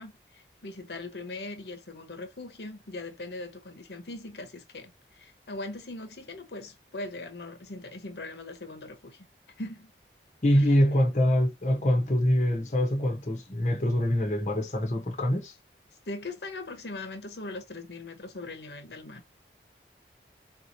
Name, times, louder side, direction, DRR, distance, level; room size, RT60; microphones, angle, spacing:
voice 1, 0.0-9.2 9.6-9.9 10.5-11.1 16.1-19.2, left 2 dB, 75° left, 0.9 m, -40 dB
voice 2, 10.4-15.5, equal, 40° left, 0.9 m, -24 dB
3.9 x 2.9 x 2.6 m
head